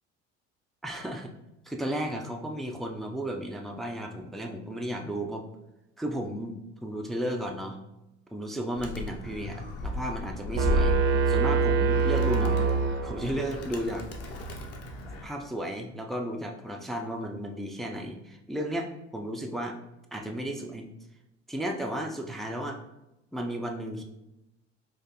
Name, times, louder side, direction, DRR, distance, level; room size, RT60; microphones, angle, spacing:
voice 1, 0.8-1.3 1.7-5.4 6.0-7.8 8.3-9.5 9.8-11.0 11.3-12.7 13.0-14.1 15.1-19.8 20.1-20.9 21.5-22.8 23.3-24.0, equal, ahead, 2 dB, 0.3 m, -34 dB
Animal, 8.8-15.2, left 3 dB, 40° left, 0.7 m, -35 dB
sound 1, 10.5-13.5, right 5 dB, 55° right, 0.6 m, -24 dB
4.0 x 2.5 x 2.9 m, 0.91 s
hypercardioid pair, 65°, 35 cm